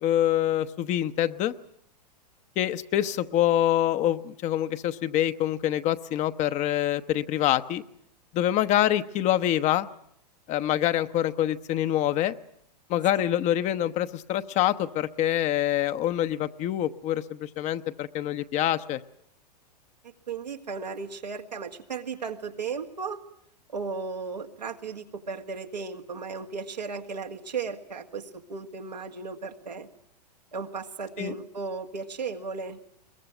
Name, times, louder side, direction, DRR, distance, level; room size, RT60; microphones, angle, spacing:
voice 1, 0.0-1.5 2.6-7.8 8.3-9.9 10.5-12.3 12.9-19.0 31.2-31.3, left 12 dB, 35° left, 12 dB, 0.9 m, -25 dB
voice 2, 20.0-23.2 23.7-29.9 30.5-32.8, right 5 dB, 90° right, 4 dB, 2.0 m, -35 dB
22.0 x 21.5 x 9.0 m, 0.72 s
hypercardioid pair, 105°, 21 cm